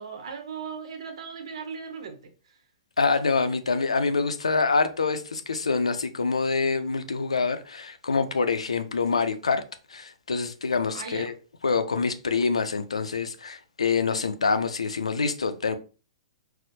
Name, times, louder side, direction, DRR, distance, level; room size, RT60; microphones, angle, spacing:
voice 1, 0.0-2.6 10.9-11.3, right 5 dB, 70° right, 0.8 m, -38 dB
voice 2, 3.0-9.6 9.9-11.3 11.6-15.7, left 4 dB, 90° left, 0.4 m, -26 dB
4.3 x 2.0 x 2.6 m
hypercardioid pair, 120°, 3 cm